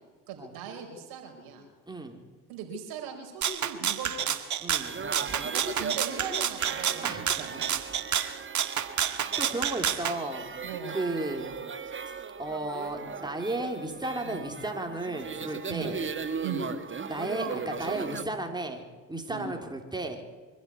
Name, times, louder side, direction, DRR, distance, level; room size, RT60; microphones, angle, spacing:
voice 1, 0.3-1.7 2.5-4.4 5.4-7.9 10.6-11.0 14.2-14.4 15.7-15.9 16.4-16.7 19.3-19.5, right 6 dB, 75° right, 3 dB, 4.6 m, -39 dB
voice 2, 1.9-2.2 4.6-4.9 7.0-7.3 9.4-10.5 10.9-11.5 12.4-16.0 17.1-18.8 19.1-20.2, right 2 dB, 10° right, 3 dB, 4.1 m, -34 dB
Rattle (instrument), 3.4-10.2, right 9 dB, 50° right, 1.8 m, -29 dB
sound 1, 4.8-18.2, right 5 dB, 30° right, 1.6 m, -38 dB
24.5 x 12.0 x 9.5 m, 1.4 s
hypercardioid pair, 65°, 37 cm